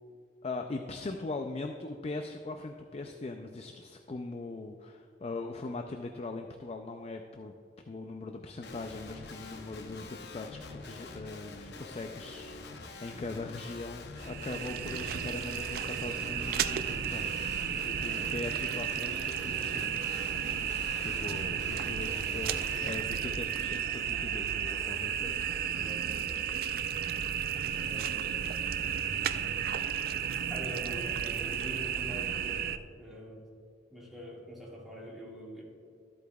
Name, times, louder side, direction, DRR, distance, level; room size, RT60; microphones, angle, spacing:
voice 1, 0.4-7.5 7.9-20.0 20.5-25.5, left 3 dB, 35° left, 5 dB, 0.4 m, -41 dB
Guitar, 8.6-22.9, left 3 dB, 65° left, 0.7 m, -46 dB
sound 1, 14.2-32.8, right 8 dB, 55° right, 0.3 m, -33 dB
voice 2, 25.7-26.3 27.7-28.4 28.8-29.7 30.5-33.4 33.9-35.6, equal, ahead, -5 dB, 1.8 m, -45 dB
13.0 x 8.2 x 2.3 m, 2.4 s
head